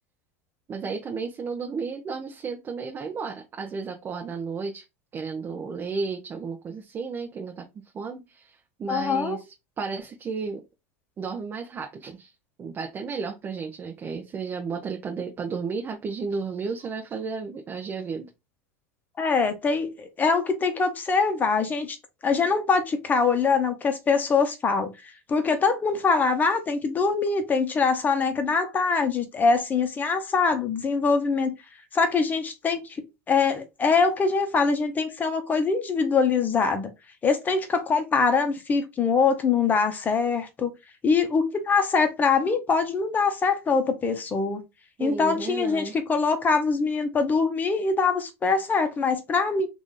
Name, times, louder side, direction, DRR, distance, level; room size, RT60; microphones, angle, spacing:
voice 1, 0.7-4.8 5.1-7.7 7.9-9.4 9.8-10.6 11.2-12.3 12.6-18.3 45.0-46.0, right 5 dB, 25° right, 0.6 m, -33 dB
voice 2, 8.9-9.4 19.2-22.0 22.2-31.5 31.9-36.9 37.2-40.7 41.0-44.6 45.0-49.7, left 4 dB, 20° left, 0.8 m, -23 dB
3.0 x 2.5 x 3.7 m
supercardioid pair, 120°, 8 cm